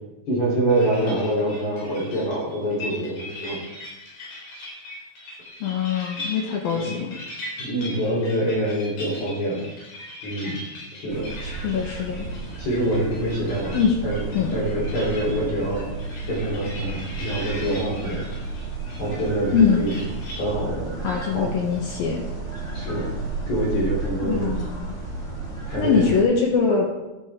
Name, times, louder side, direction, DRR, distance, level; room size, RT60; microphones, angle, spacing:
voice 1, 0.3-3.6 6.7-7.0 7.6-9.7 10.2-10.6 10.9-11.3 12.6-13.8 14.0-14.2 14.5-15.9 16.3-18.2 19.0-19.9 20.4-21.0 21.3-21.6 22.7-24.6 25.7-26.0, right 1 dB, 40° left, -4 dB, 4.5 m, -25 dB
sound 1, 0.7-20.6, left 1 dB, 55° left, 5.4 m, -40 dB
voice 2, 5.6-7.1 11.4-12.3 13.7-14.0 14.3-14.5 19.5-19.9 21.0-22.3 24.2-25.0 25.8-26.9, left 6 dB, 75° left, 1 dB, 2.2 m, -23 dB
sound 2, 11.1-26.2, right 3 dB, 20° left, 2.3 m, -33 dB
12.5 x 12.0 x 3.7 m, 1.1 s
omnidirectional pair, 5.8 m